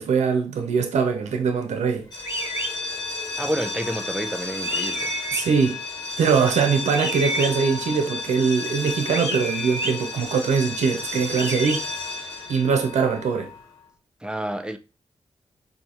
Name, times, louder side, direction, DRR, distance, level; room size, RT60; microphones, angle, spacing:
voice 1, 0.0-2.1 5.3-5.8 6.2-11.8 12.5-13.5, right 5 dB, 80° right, 0.7 m, -22 dB
sound 1, 2.0-13.7, left 3 dB, 40° left, 1.6 m, -32 dB
sound 2, 2.2-2.7 4.6-5.4 6.9-7.5 9.1-9.9 11.3-11.8, right 1 dB, 25° right, 1.1 m, -30 dB
voice 2, 3.4-5.1 14.2-14.8, right 1 dB, 5° right, 0.6 m, -29 dB
4.1 x 2.8 x 2.5 m
supercardioid pair, 45°, 12 cm